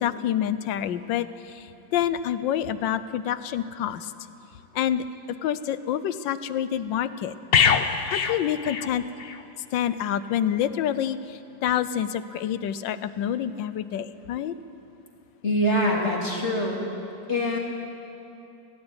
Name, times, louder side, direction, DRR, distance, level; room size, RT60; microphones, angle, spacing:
voice 1, 0.0-4.1 4.7-5.0 5.4-7.3 8.1-9.0 9.7-14.5, left 10 dB, 80° left, 14 dB, 1.4 m, -27 dB
sound 1, 7.5-9.4 9.7-9.9, left 6 dB, 55° left, 0.6 m, -23 dB
voice 2, 15.4-16.8 17.3-17.6, equal, 35° left, -2 dB, 2.8 m, -24 dB
17.5 x 16.5 x 9.8 m, 2.7 s
omnidirectional pair, 2.0 m